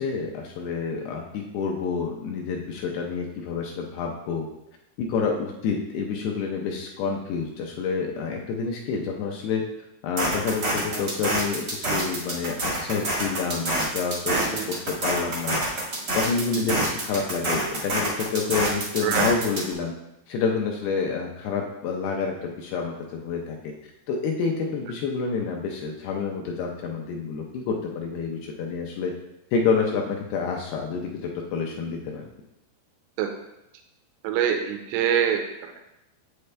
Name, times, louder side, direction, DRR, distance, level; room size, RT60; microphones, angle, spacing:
voice 1, 0.0-4.5 5.0-9.6 10.0-15.6 16.1-19.9 20.3-23.7 24.1-29.1 29.5-31.1 31.4-32.2, left 5 dB, 75° left, 1 dB, 2.4 m, -28 dB
sound 1, 10.2-19.7, right 1 dB, 65° right, 1.0 m, -27 dB
voice 2, 14.3-14.6 16.6-16.7 19.0-19.4 33.2-33.3 34.2-35.8, right 8 dB, 90° right, 4 dB, 3.0 m, -25 dB
8.2 x 8.0 x 3.3 m, 0.87 s
omnidirectional pair, 5.2 m